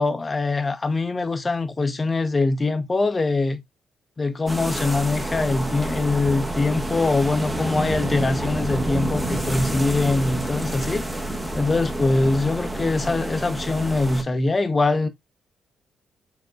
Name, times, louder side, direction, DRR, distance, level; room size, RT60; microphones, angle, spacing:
voice 1, 0.0-3.6 4.2-11.1 11.5-15.1, left 3 dB, 30° left, 0.8 m, -23 dB
sound 1, 4.5-14.2, right 1 dB, 15° right, 1.1 m, -28 dB
4.9 x 3.5 x 2.3 m
hypercardioid pair, 50°, 0 cm